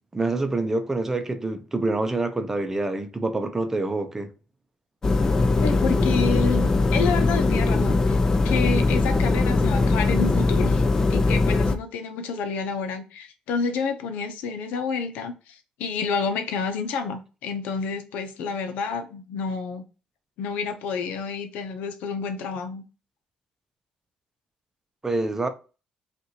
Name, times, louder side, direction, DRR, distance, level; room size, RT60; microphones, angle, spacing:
voice 1, 0.1-4.3 25.0-25.5, right 2 dB, 15° right, 0.7 m, -26 dB
sound 1, 5.0-11.8, left 3 dB, 25° left, 0.5 m, -21 dB
voice 2, 5.5-8.2 8.4-10.8 11.1-19.8 20.4-22.8, left 5 dB, 90° left, 0.8 m, -29 dB
5.3 x 2.6 x 2.9 m
cardioid pair, 125°, 3 cm